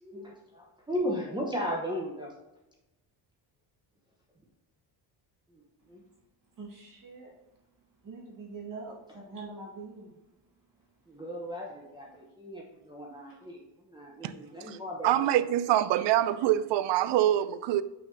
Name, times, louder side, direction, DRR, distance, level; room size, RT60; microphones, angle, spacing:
voice 1, 0.0-2.3 5.5-6.0 11.1-15.3, equal, 10° right, 0.9 m, -36 dB
voice 2, 6.6-7.4 8.0-10.1 14.2-14.3, right 3 dB, 45° right, 2.0 m, -44 dB
voice 3, 15.0-17.8, right 12 dB, 65° right, 0.5 m, -25 dB
6.2 x 5.7 x 2.7 m
cardioid pair, 125°, 48 cm